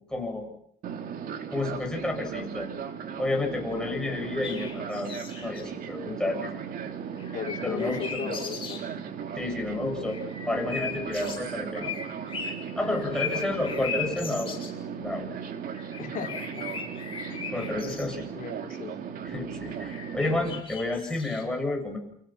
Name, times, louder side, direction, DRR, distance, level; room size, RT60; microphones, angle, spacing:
voice 1, 0.1-0.5 1.5-2.7 3.2-5.1 5.4-6.6 7.6-8.3 9.4-10.2 10.5-11.9 12.8-14.5 15.0-15.3 17.5-18.3 19.2-22.0, left 2 dB, 5° left, 0 dB, 8.0 m, -30 dB
Fixed-wing aircraft airplane, 0.8-20.6, right 7 dB, 60° right, 2.7 m, -37 dB
voice 2, 3.7-4.2 7.3-8.8 16.0-16.9 17.3-17.4 18.3-19.0, left 8 dB, 55° left, 2 dB, 5.1 m, -37 dB
sound 1, 4.4-5.6 7.2-8.9 10.1-14.7 15.7-18.1 19.6-21.4, left 6 dB, 30° left, 7.5 m, -38 dB
29.0 x 26.0 x 6.0 m, 0.68 s
cardioid pair, 110°, 17 cm